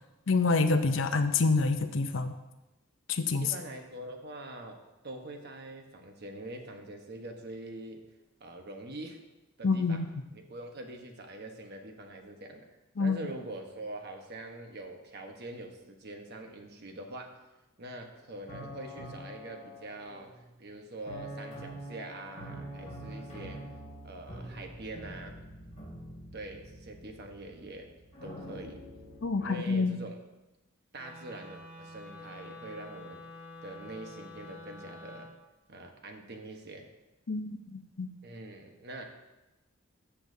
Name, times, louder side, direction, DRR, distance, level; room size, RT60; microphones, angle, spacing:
voice 1, 0.3-2.3 3.1-3.5 9.6-10.1 13.0-13.2 29.2-30.0 37.3-38.1, left 3 dB, 65° left, 8 dB, 0.6 m, -27 dB
voice 2, 3.4-4.8 5.0-8.0 8.4-9.2 9.6-10.0 10.3-12.7 13.0-17.3 17.8-20.3 20.6-23.6 24.0-25.4 26.3-27.9 28.2-28.8 29.4-30.1 30.9-33.2 33.6-35.3 35.7-36.9 38.2-39.0, right 1 dB, 55° right, 3 dB, 1.2 m, -44 dB
sound 1, 18.5-20.5 21.1-29.4, right 1 dB, 35° left, 3.2 m, -45 dB
Wind instrument woodwind instrument, 31.0-35.3, left 2 dB, 10° right, 1.6 m, -48 dB
13.5 x 7.2 x 2.8 m, 1.0 s
head